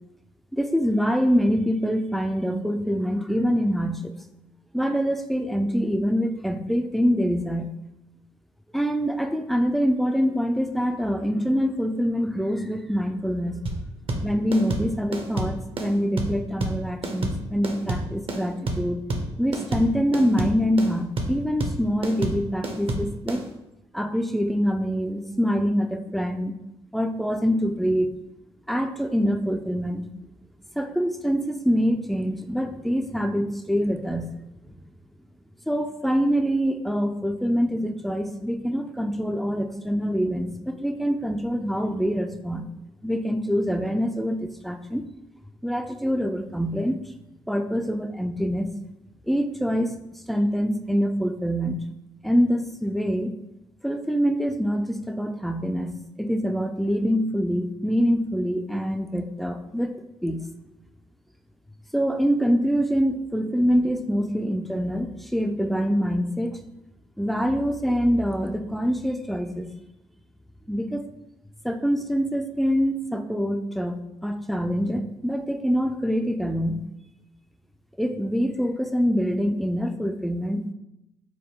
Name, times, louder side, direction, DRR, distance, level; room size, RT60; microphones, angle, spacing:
voice 1, 0.5-4.1 4.7-7.7 8.7-13.6 14.2-19.0 19.4-23.4 23.9-26.5 26.9-28.1 28.7-30.0 30.8-34.3 34.7-34.8 35.7-42.7 43.0-45.0 45.6-47.0 47.5-48.7 49.3-50.0 50.3-51.8 52.2-53.3 53.8-60.0 60.2-60.4 61.9-66.6 67.2-69.7 70.7-71.0 71.6-76.8 78.0-80.7, equal, ahead, 6 dB, 0.4 m, -25 dB
sound 1, 13.7-23.4, right 2 dB, 45° right, 0.8 m, -28 dB
4.9 x 2.2 x 3.7 m, 0.91 s
hypercardioid pair, 50°, 13 cm